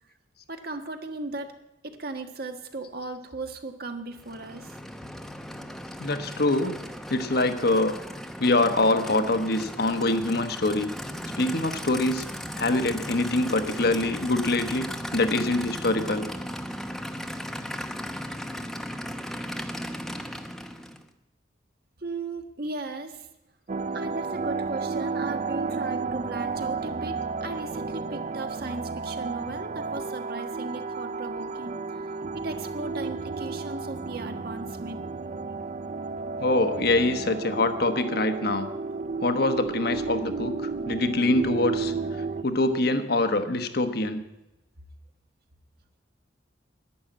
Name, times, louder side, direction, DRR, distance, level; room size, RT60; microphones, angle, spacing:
voice 1, 0.5-1.5 1.8-4.8 22.0-23.3 23.9-31.8 32.3-35.0, right 2 dB, 55° right, 6 dB, 1.5 m, -36 dB
Aircraft / Idling, 4.1-21.1, equal, ahead, 0.8 m, -36 dB
voice 2, 6.0-6.7 7.1-7.9 8.4-10.9 11.4-12.3 12.6-14.9 15.1-16.3 36.4-38.7 39.2-41.9 42.4-44.2, left 2 dB, 60° left, 8 dB, 1.2 m, -24 dB
sound 1, 23.7-42.4, right 4 dB, 40° right, 0.4 m, -32 dB
11.0 x 10.5 x 8.7 m, 0.94 s
head